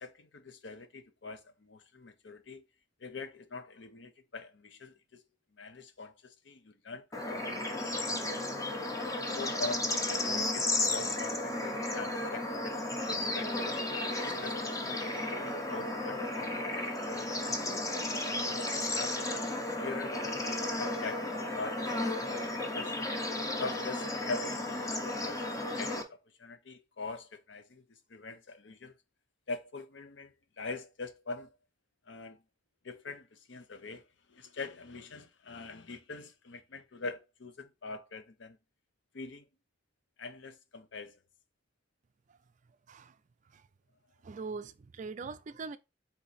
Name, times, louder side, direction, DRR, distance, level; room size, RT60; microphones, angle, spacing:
voice 1, 0.0-2.6 3.0-5.2 5.5-8.7 9.3-13.7 14.2-17.5 18.3-21.9 22.2-23.0 23.6-27.8 28.1-28.9 29.5-31.5 32.1-32.4 32.8-38.6 39.1-39.5 40.2-41.2, left 3 dB, 75° left, 0.7 m, -44 dB
Bird / Insect / Frog, 7.1-26.0, left 2 dB, 20° left, 0.7 m, -34 dB
voice 2, 44.2-45.8, right 4 dB, 45° right, 0.4 m, -42 dB
4.0 x 2.9 x 4.0 m
head